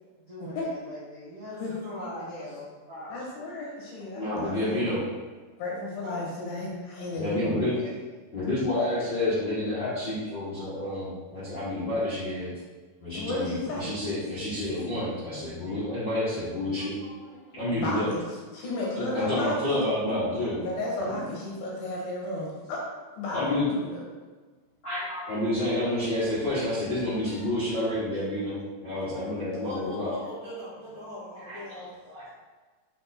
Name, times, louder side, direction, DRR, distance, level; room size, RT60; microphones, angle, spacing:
voice 1, 0.1-2.7 7.3-8.0 16.5-18.0, left 1 dB, 80° right, -9 dB, 1.1 m, -44 dB
voice 2, 1.5-2.5 2.9-3.2 6.0-6.2 25.8-27.5 29.6-32.3, left 1 dB, 60° right, -8 dB, 2.1 m, -42 dB
voice 3, 3.1-4.8 5.6-7.7 13.1-13.9 17.8-18.2 18.5-19.7 20.6-22.8 23.2-24.0, left 2 dB, 65° left, -4 dB, 2.8 m, -33 dB
voice 4, 4.1-5.0 7.2-7.7 8.3-12.5 13.0-16.9 17.5-18.1 19.0-20.6 21.0-21.2 23.3-23.6 24.8-30.1 31.4-32.2, left 1 dB, 90° left, -12 dB, 1.0 m, -29 dB
6.0 x 4.3 x 4.3 m, 1.4 s
omnidirectional pair, 4.9 m